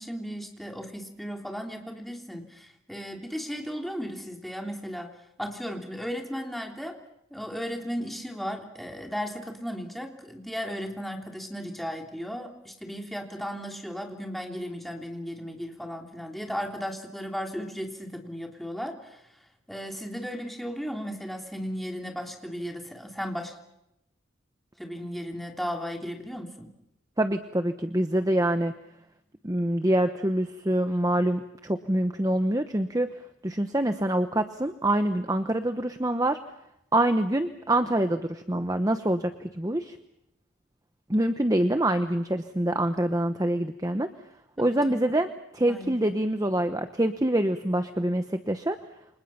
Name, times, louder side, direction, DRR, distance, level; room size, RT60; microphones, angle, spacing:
voice 1, 0.0-5.1 5.4-7.0 7.3-19.2 19.7-23.6 24.8-26.7 44.6-45.1 45.7-46.0, equal, ahead, 2 dB, 3.4 m, -35 dB
voice 2, 27.2-28.7 29.4-33.1 33.4-36.4 36.9-40.0 41.1-44.1 44.6-48.8, right 1 dB, 20° right, 8 dB, 1.0 m, -25 dB
29.5 x 26.0 x 5.9 m, 0.84 s
head